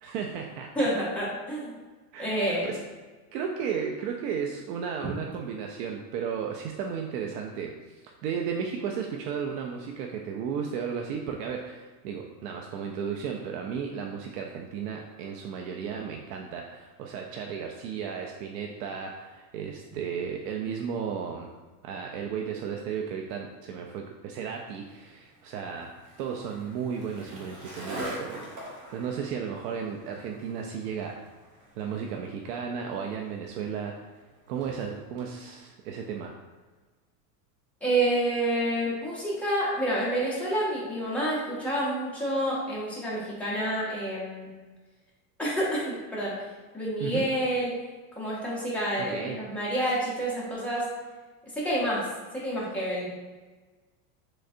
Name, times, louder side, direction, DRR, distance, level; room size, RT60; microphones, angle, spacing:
voice 1, 0.0-0.9 2.1-2.8 3.3-21.5 21.8-28.4 28.9-31.2 31.8-34.0 34.5-36.3 47.0-47.3 49.0-49.4, right 7 dB, 70° right, 1 dB, 0.5 m, -34 dB
voice 2, 0.8-1.7 2.2-2.7 37.8-44.5 45.4-46.4 46.7-47.7 48.2-50.8 51.5-52.1 52.3-53.1, right 1 dB, 5° left, -8 dB, 0.6 m, -28 dB
Skateboard, 24.7-35.3, right 1 dB, 55° right, 1.2 m, -44 dB
3.7 x 3.2 x 2.5 m, 1.3 s
supercardioid pair, 160°, 47 cm